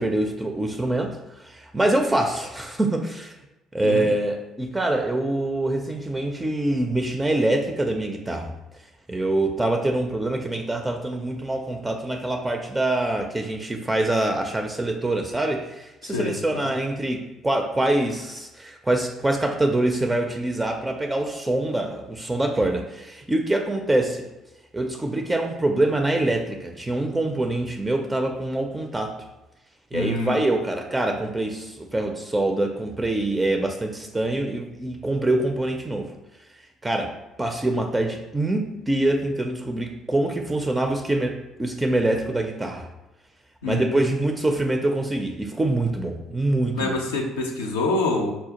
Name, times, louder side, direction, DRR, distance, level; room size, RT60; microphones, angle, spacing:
voice 1, 0.0-3.3 3.7-8.5 9.1-24.3 24.7-29.1 29.9-36.1 36.8-37.1 37.4-42.9 43.7-46.9, right 2 dB, 15° right, 3 dB, 0.4 m, -25 dB
voice 2, 16.0-16.4 16.6-16.7 29.9-30.3 43.6-43.9 46.7-48.3, left 2 dB, 75° left, 1 dB, 0.4 m, -26 dB
4.1 x 2.2 x 2.8 m, 1.0 s
figure-of-eight pair, 50°, 0 cm